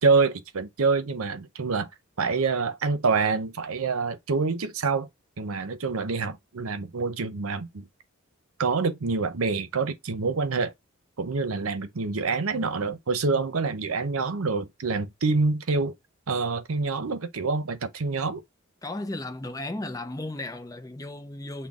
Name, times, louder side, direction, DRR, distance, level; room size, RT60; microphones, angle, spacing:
voice 1, 0.0-1.9 2.2-5.1 5.4-7.9 8.6-10.7 11.2-15.9 16.3-18.4, right 4 dB, 85° right, 0.7 m, -26 dB
voice 2, 18.8-21.7, left 2 dB, 15° left, 0.5 m, -35 dB
6.1 x 2.2 x 3.6 m
head